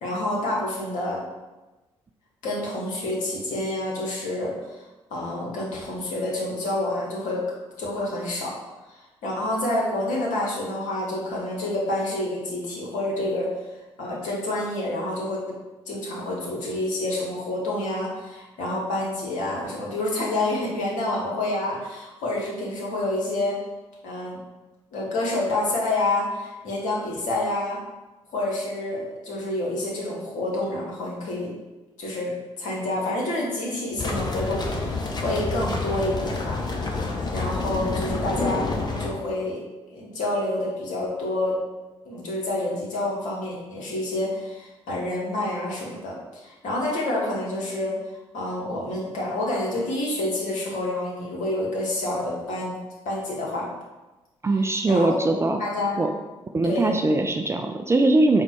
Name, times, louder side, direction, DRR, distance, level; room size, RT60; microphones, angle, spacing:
voice 1, 0.0-1.2 2.4-4.8 5.1-7.4 7.8-8.5 9.2-13.5 14.0-15.6 15.9-23.6 24.0-24.4 24.9-27.8 28.3-31.5 32.0-36.6 37.3-38.7 39.0-39.6 39.9-41.6 42.0-48.0 48.3-53.7 54.9-56.0 56.6-57.0, left 1 dB, 60° left, -4 dB, 1.1 m, -28 dB
sound 1, 34.0-39.1, left 3 dB, 30° left, 0.7 m, -28 dB
voice 2, 54.4-55.6 56.0-56.1 56.5-58.4, right 2 dB, 20° right, 5 dB, 0.3 m, -21 dB
3.8 x 2.2 x 4.5 m, 1.1 s
figure-of-eight pair, 40°, 15 cm